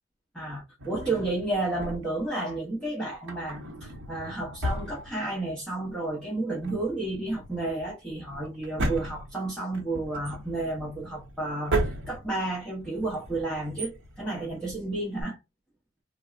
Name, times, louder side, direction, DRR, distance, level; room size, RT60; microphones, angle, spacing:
voice 1, 0.3-11.7 12.1-15.4, right 2 dB, 5° left, 0.9 m, -31 dB
Drawer open or close, 0.8-2.3 3.1-5.7 5.9-6.0 6.5-15.2, right 1 dB, 65° right, 0.8 m, -35 dB
3.4 x 2.0 x 2.4 m
head